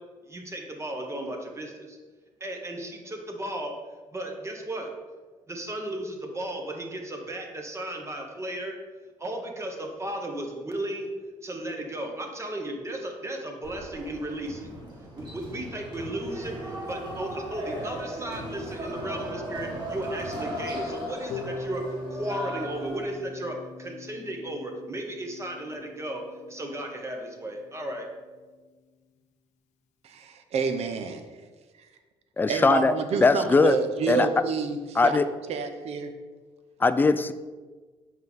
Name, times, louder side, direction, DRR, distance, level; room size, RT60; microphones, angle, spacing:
voice 1, 0.3-2.0 2.4-3.8 4.1-4.9 5.5-8.8 9.2-11.1 11.4-14.7 15.1-21.8 22.1-26.2 26.5-28.1, right 1 dB, 25° right, 2 dB, 1.0 m, -35 dB
sound 1, 13.6-23.2, equal, 40° right, 1.8 m, -37 dB
Harp, 21.3-27.4, left 2 dB, 80° left, 0.6 m, -41 dB
voice 2, 30.0-31.2 32.5-35.2 35.5-36.1, right 5 dB, 65° right, 6 dB, 0.7 m, -29 dB
voice 3, 32.4-32.9 33.2-33.8 34.1-34.3 35.0-35.3 36.8-37.3, left 3 dB, 15° left, 12 dB, 0.3 m, -20 dB
5.5 x 4.5 x 4.0 m, 1.4 s
cardioid pair, 85°, 12 cm